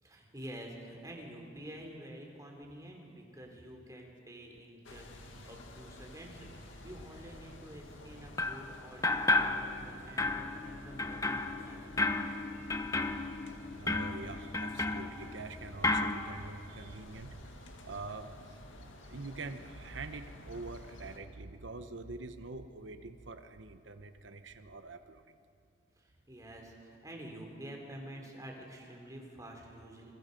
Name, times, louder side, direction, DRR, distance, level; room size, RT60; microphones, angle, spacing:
voice 1, 0.0-5.1 5.4-12.2 26.0-30.1, right 1 dB, 20° right, 1 dB, 3.3 m, -48 dB
sound 1, 4.8-21.2, left 1 dB, 90° left, 2.1 m, -51 dB
sound 2, 8.4-8.7 9.0-9.9 10.2-15.5 15.8-16.2, left 3 dB, 15° left, 0.9 m, -32 dB
voice 2, 13.7-17.6 17.8-18.3 19.0-25.2, right 3 dB, 75° right, 9 dB, 1.0 m, -45 dB
27.5 x 22.5 x 5.3 m, 2.5 s
head